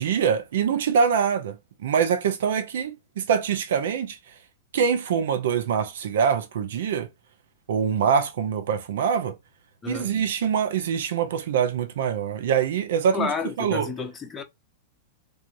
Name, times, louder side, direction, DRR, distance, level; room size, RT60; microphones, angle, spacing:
voice 1, 0.0-1.6 1.8-4.2 4.7-7.1 7.7-9.4 9.9-13.3 13.6-13.9, right 7 dB, 65° right, 0.6 m, -24 dB
voice 2, 9.8-10.2 13.1-14.4, left 5 dB, 20° left, 0.7 m, -31 dB
3.5 x 2.7 x 2.6 m
figure-of-eight pair, 100°, 0 cm